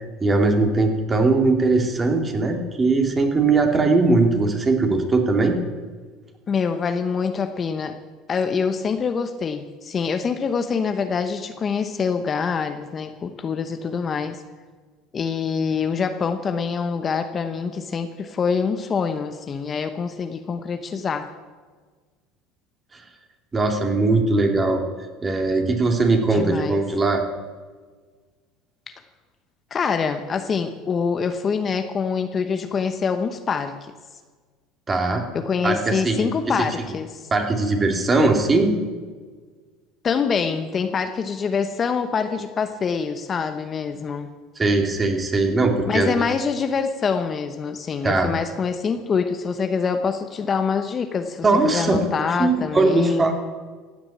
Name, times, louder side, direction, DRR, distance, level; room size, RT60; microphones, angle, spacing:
voice 1, 0.0-5.6 22.9-23.0 23.5-24.8 25.2-27.2 34.9-35.2 35.6-36.3 37.3-38.7 44.6-46.3 48.0-48.3 51.4-52.0 52.4-53.3, right 3 dB, 25° right, 4 dB, 2.7 m, -20 dB
voice 2, 6.5-8.0 8.3-14.4 15.1-21.3 26.3-26.8 29.7-33.9 35.3-37.3 40.0-44.3 45.9-53.3, left 5 dB, 30° left, 8 dB, 1.0 m, -25 dB
15.5 x 8.8 x 8.6 m, 1.5 s
supercardioid pair, 105°, 0 cm